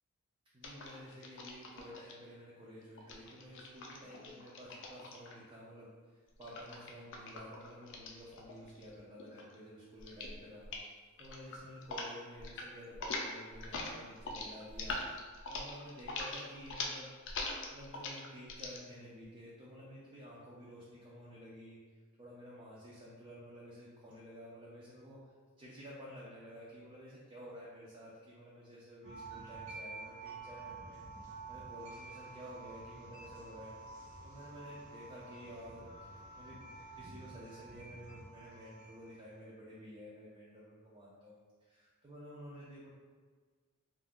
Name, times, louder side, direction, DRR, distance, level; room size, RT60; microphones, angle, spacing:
voice 1, 0.5-10.7 11.2-15.0 15.5-17.1 17.7-21.8 22.2-25.2 25.6-31.0 31.5-33.8 34.2-42.9, equal, 20° right, -7 dB, 0.4 m, -52 dB
sound 1, 0.6-2.1 3.0-5.5 6.4-8.9 9.2-9.6 10.0-10.4 10.6-10.9 11.2-12.1 12.3-12.7 12.9-18.8, left 3 dB, 55° left, 0.4 m, -42 dB
sound 2, 29.0-39.2, right 3 dB, 70° right, 0.9 m, -50 dB
2.4 x 2.3 x 3.5 m, 1.5 s
head